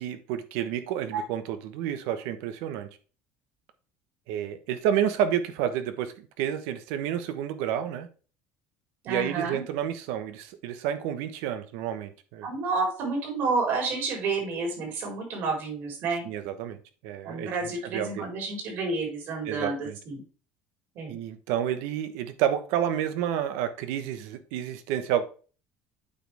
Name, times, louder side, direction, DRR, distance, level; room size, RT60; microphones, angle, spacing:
voice 1, 0.0-2.9 4.3-8.1 9.1-12.5 16.2-16.8 17.0-18.3 19.4-20.0 21.1-25.3, right 10 dB, 85° right, 1.1 m, -30 dB
voice 2, 9.0-9.6 12.4-16.2 17.2-19.8 20.1-20.2 20.9-21.2, right 3 dB, 55° right, 4.2 m, -30 dB
8.7 x 5.3 x 3.4 m
cardioid pair, 160°, 4 cm